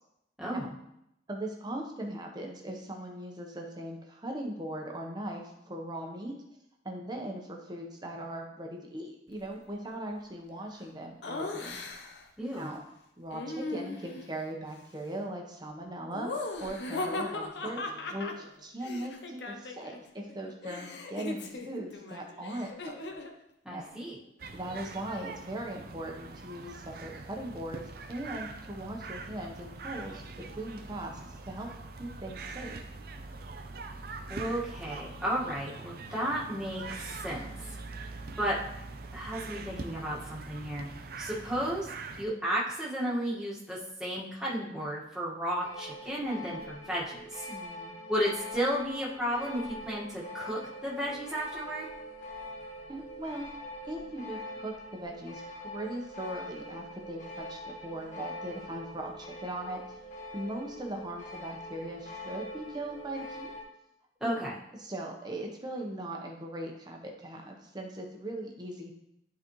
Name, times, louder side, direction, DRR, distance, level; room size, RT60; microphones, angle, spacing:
voice 1, 1.3-6.3 6.8-11.8 12.5-12.8 13.2-17.8 18.1-22.9 23.7-24.0 24.5-30.2 30.5-31.2 31.5-31.7 32.0-32.8 47.5-47.9 52.9-53.5 53.8-60.0 60.3-63.5 64.2-64.3 64.8-68.9, right 1 dB, 25° right, 1 dB, 1.0 m, -39 dB
Laughter, 11.2-12.3 13.3-14.3 16.1-20.0 20.3-23.4, left 2 dB, 65° left, 0.7 m, -38 dB
voice 2, 12.4-12.7 23.6-24.2 34.3-37.5 38.4-38.6 39.1-40.9 41.2-41.9 42.2-47.5 48.1-51.8 64.2-64.5, equal, 5° right, -7 dB, 1.6 m, -33 dB
sound 1, 24.4-42.3, right 3 dB, 55° right, 0.6 m, -43 dB
sound 2, 45.6-63.6, left 1 dB, 40° left, 1.1 m, -44 dB
11.0 x 4.1 x 3.1 m, 0.81 s
head